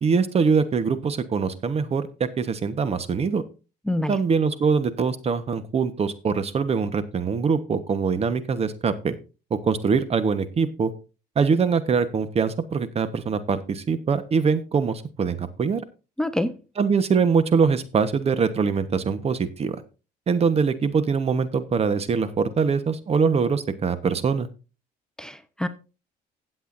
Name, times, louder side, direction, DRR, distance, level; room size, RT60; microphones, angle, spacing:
voice 1, 0.0-3.4 4.1-9.1 9.5-10.9 11.3-15.8 16.8-19.8 20.3-24.5, right 5 dB, 35° right, 1.2 m, -23 dB
voice 2, 3.9-4.2 16.2-16.6 25.2-25.7, left 1 dB, 5° left, 0.8 m, -26 dB
16.0 x 7.9 x 2.6 m
cardioid pair, 110°, 17 cm